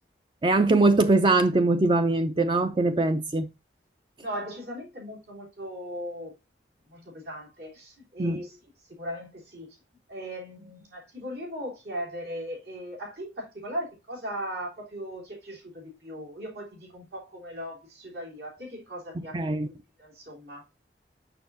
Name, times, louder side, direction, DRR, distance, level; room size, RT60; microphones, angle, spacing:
voice 1, 0.4-3.5 8.2-8.4 19.2-19.7, right 2 dB, 30° right, 0.4 m, -22 dB
voice 2, 4.2-6.3 6.9-8.6 9.0-9.8 10.1-19.4 19.6-20.6, equal, 70° right, 3.4 m, -38 dB
6.7 x 6.1 x 2.7 m
head